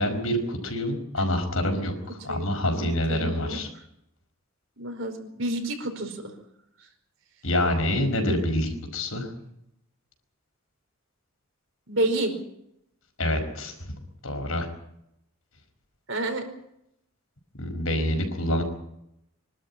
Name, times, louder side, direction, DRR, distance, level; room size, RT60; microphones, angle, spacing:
voice 1, 0.0-3.7 7.4-9.3 13.2-13.9 14.2-14.7 17.5-18.6, left 1 dB, 75° left, 5 dB, 5.2 m, -26 dB
voice 2, 2.3-3.6 4.8-6.3 11.9-12.3 16.1-16.4, right 1 dB, 60° right, 5 dB, 4.9 m, -29 dB
25.0 x 12.5 x 9.9 m, 0.80 s
head